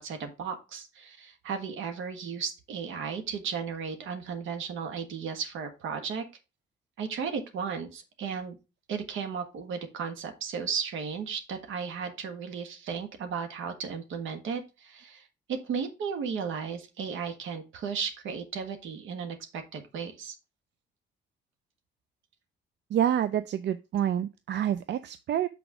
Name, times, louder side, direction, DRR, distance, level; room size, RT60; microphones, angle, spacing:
voice 1, 0.0-6.2 7.0-8.6 8.9-20.3, right 6 dB, 80° right, 1.5 m, -35 dB
voice 2, 22.9-25.5, right 10 dB, 60° right, 0.5 m, -27 dB
6.1 x 4.6 x 5.0 m
cardioid pair, 90°, 20 cm